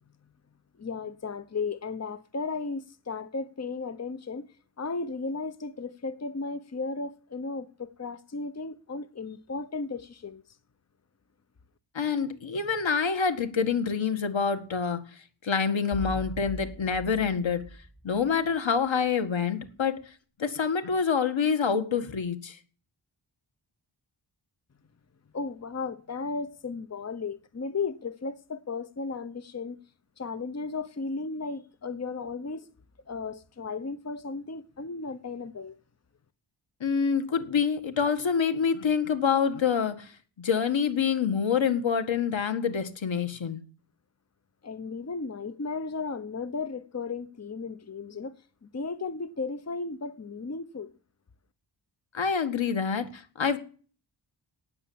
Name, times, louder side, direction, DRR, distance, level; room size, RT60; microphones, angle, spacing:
voice 1, 0.8-4.5 4.8-10.4 25.3-29.8 30.2-32.7 33.1-35.8 44.6-48.4 48.6-50.9, left 4 dB, 35° left, 1.0 m, -35 dB
voice 2, 12.0-15.0 15.4-17.6 18.0-20.0 20.4-22.6 36.8-40.1 40.4-43.6 52.1-53.6, left 6 dB, 80° left, 1.9 m, -26 dB
sound 1, 15.9-18.8, right 1 dB, 15° left, 3.6 m, -41 dB
18.0 x 6.9 x 8.6 m
wide cardioid pair, 105°, 45 cm